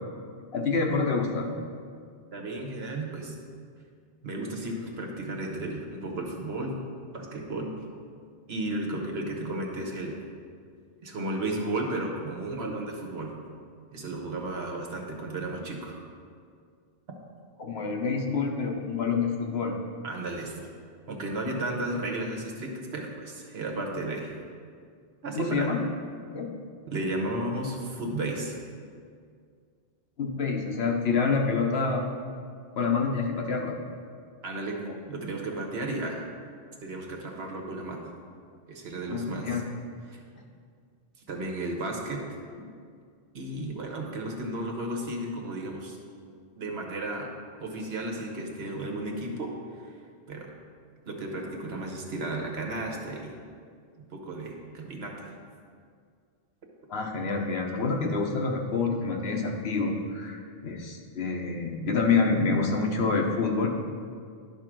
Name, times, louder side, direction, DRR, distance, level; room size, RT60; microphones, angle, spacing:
voice 1, 0.5-1.5 17.6-19.8 25.3-25.8 26.3-26.5 30.2-32.0 32.7-33.8 39.1-39.6 56.9-63.7, left 4 dB, 80° left, 1 dB, 1.2 m, -27 dB
voice 2, 2.3-3.3 4.2-6.8 7.1-7.7 8.5-10.2 11.0-13.3 13.9-16.0 20.0-20.7 21.1-24.3 25.2-25.7 26.9-28.6 34.4-36.2 36.8-38.1 38.7-39.6 40.1-40.2 41.3-42.2 43.3-46.0 46.6-47.3 47.6-49.9 50.3-50.5 51.0-53.4 54.1-55.3, right 2 dB, 85° right, 1 dB, 1.4 m, -33 dB
11.0 x 3.8 x 6.0 m, 2.1 s
omnidirectional pair, 1.0 m